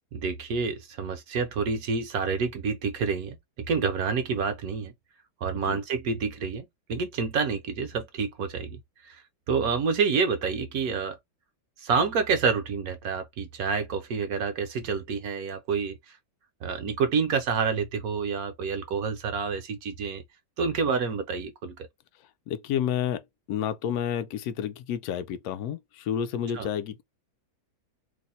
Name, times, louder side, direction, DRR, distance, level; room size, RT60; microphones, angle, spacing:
voice 1, 0.1-4.9 5.4-9.2 9.5-11.2 11.8-16.2 16.6-20.2 20.6-21.8 26.5-26.7, right 5 dB, 70° right, 1.0 m, -28 dB
voice 2, 22.5-23.2 23.5-27.0, left 9 dB, 70° left, 1.0 m, -30 dB
2.9 x 2.1 x 3.9 m
omnidirectional pair, 1.8 m